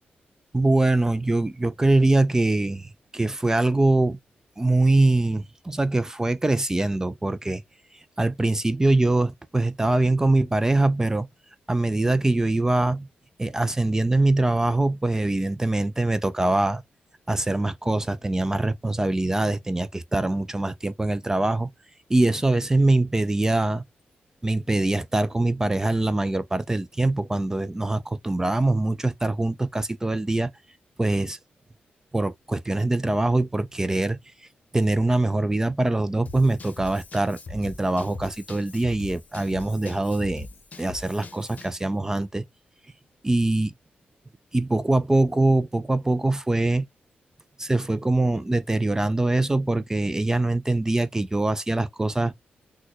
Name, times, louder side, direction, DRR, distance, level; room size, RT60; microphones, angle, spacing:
voice 1, 0.5-4.2 4.6-7.6 8.2-11.3 11.7-13.1 13.4-16.8 17.3-21.7 22.1-23.8 24.4-30.5 31.0-31.4 32.1-34.2 34.7-40.5 40.8-42.4 43.2-43.7 44.5-46.9 47.6-52.3, right 2 dB, 15° right, 0.3 m, -23 dB
Drum kit / Drum, 36.3-41.8, left 3 dB, 50° left, 0.8 m, -42 dB
4.1 x 2.2 x 2.9 m
cardioid pair, 95°, 3 cm